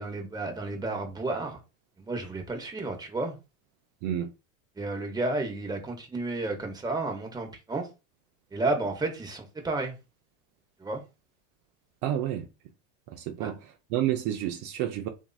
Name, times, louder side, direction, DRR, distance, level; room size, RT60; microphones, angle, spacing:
voice 1, 0.0-1.6 2.0-3.4 4.8-7.9 8.5-9.9 10.8-11.0 13.4-13.5, right 2 dB, 10° right, 0.9 m, -32 dB
voice 2, 12.0-12.5 13.1-15.1, right 11 dB, 50° right, 0.5 m, -30 dB
2.9 x 2.6 x 2.3 m
hypercardioid pair, 95°, 40 cm